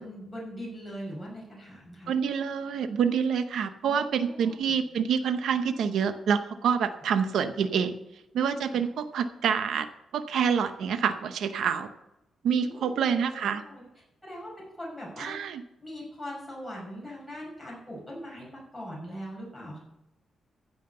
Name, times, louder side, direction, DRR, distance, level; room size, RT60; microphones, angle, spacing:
voice 1, 0.0-2.1 3.8-4.5 8.7-8.8 12.5-13.9 14.2-15.4 15.8-19.8, equal, 5° left, -5 dB, 5.6 m, -41 dB
voice 2, 2.1-7.9 8.3-9.9 10.1-11.9 12.4-13.6 15.2-15.6, right 7 dB, 90° right, 9 dB, 0.8 m, -27 dB
15.0 x 5.8 x 6.8 m, 0.93 s
wide cardioid pair, 170°, 0 cm